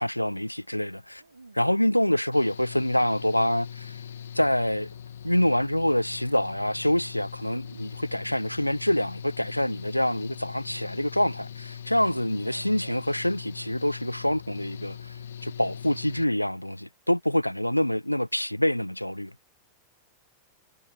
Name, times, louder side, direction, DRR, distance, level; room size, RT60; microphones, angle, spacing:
voice 1, 0.0-1.2 1.5-4.0 4.3-4.9 5.2-15.2 15.4-19.3, left 1 dB, 90° left, 0.9 m, -26 dB
voice 2, 1.2-1.7 12.4-13.0, right 3 dB, 80° right, 3.0 m, -49 dB
Engine / Mechanical fan, 2.3-16.2, left 8 dB, 65° left, 2.7 m, -41 dB
figure-of-eight pair, 90°, 0 cm